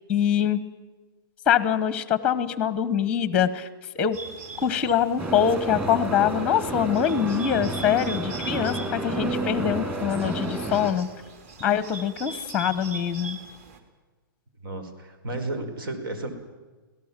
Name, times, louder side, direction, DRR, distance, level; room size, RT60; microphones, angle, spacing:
voice 1, 0.1-0.6 1.5-3.7 3.9-4.2 4.6-11.1 11.6-13.4, left 9 dB, 10° left, 14 dB, 0.9 m, -24 dB
Bird, 4.1-13.8, right 4 dB, 40° right, 3.1 m, -42 dB
sound 1, 5.2-10.9, right 2 dB, 15° right, 2.4 m, -30 dB
voice 2, 14.6-16.3, right 2 dB, 75° right, 8 dB, 5.0 m, -33 dB
26.5 x 17.5 x 7.4 m, 1.3 s
hypercardioid pair, 170°, 12 cm